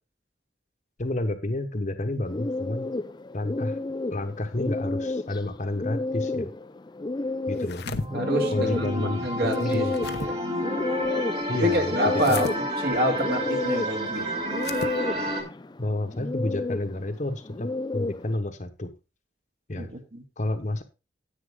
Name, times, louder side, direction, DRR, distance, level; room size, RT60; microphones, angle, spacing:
voice 1, 1.0-2.9 3.3-3.8 4.1-6.5 7.5-7.8 8.5-10.0 11.5-11.9 12.3-12.5 15.8-18.9 19.7-19.9 20.4-20.8, left 1 dB, 45° left, 7 dB, 1.1 m, -30 dB
sound 1, 2.2-18.3, left 2 dB, 25° left, 0.4 m, -32 dB
sound 2, 7.5-8.1 9.5-10.3 12.2-12.6 14.5-15.0, left 4 dB, 65° left, 0.7 m, -34 dB
sound 3, 7.9-15.4, equal, 35° right, 2.4 m, -31 dB
voice 2, 7.9-9.9 10.2-10.3 11.5-12.5 12.8-14.3 19.8-20.2, equal, 60° right, 3 dB, 2.1 m, -27 dB
9.9 x 8.5 x 3.6 m, 0.29 s
head